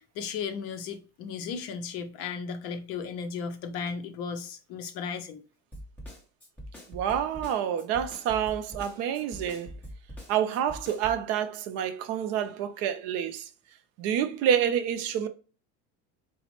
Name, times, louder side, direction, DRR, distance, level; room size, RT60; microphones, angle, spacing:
voice 1, 0.0-5.4, left 6 dB, 50° left, 0.5 m, -35 dB
Snare drum, 5.7-11.2, equal, 5° left, 0.9 m, -43 dB
voice 2, 6.9-9.7 10.3-13.5 14.0-15.3, right 9 dB, 55° right, 0.4 m, -28 dB
4.0 x 2.0 x 3.0 m
cardioid pair, 165°, 31 cm